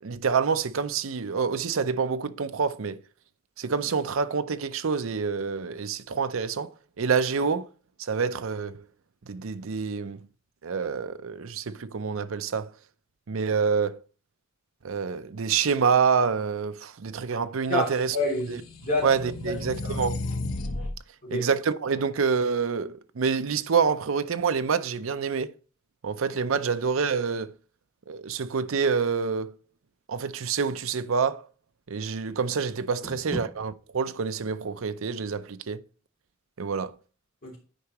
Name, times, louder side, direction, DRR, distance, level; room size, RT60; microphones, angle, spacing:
voice 1, 0.0-3.0 3.6-7.7 8.0-8.8 9.3-10.2 10.6-12.7 13.3-14.0 14.8-18.2 18.5-18.6 19.0-20.2 21.3-25.5 26.0-27.5 28.1-29.5 30.1-31.4 31.9-35.8 36.6-36.9, right 5 dB, 70° right, 0.6 m, -27 dB
voice 2, 17.7-19.1 19.4-20.0 21.2-21.5 33.0-33.4 37.4-37.6, left 2 dB, 45° left, 3.0 m, -29 dB
sound 1, 18.0-21.0, left 2 dB, 80° left, 1.0 m, -33 dB
10.0 x 4.8 x 3.0 m
head